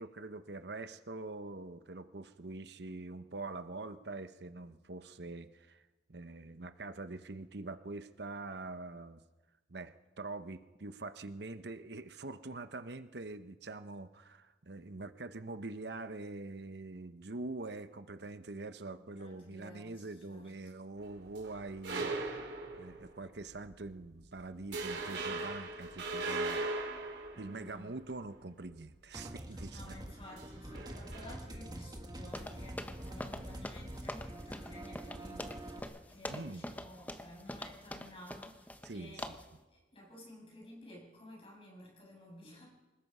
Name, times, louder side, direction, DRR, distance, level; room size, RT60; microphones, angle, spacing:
voice 1, 0.0-9.2 9.7-22.1 22.7-26.6 27.3-29.9 36.3-36.6 38.8-39.3, right 2 dB, 70° right, 11 dB, 0.9 m, -44 dB
voice 2, 19.1-20.5 27.5-27.9 29.7-39.3 39.7-42.7, left 1 dB, 30° left, -1 dB, 7.3 m, -53 dB
sound 1, 21.0-23.2 23.7-23.9 24.2-24.4 24.7-28.2 30.3-31.2, right 3 dB, 90° right, 3.7 m, -39 dB
sound 2, 29.1-35.8, right 1 dB, 25° right, 1.9 m, -46 dB
sound 3, 32.3-38.9 39.2-39.5, left 1 dB, 10° left, 0.9 m, -44 dB
25.0 x 20.0 x 5.6 m, 1.2 s
head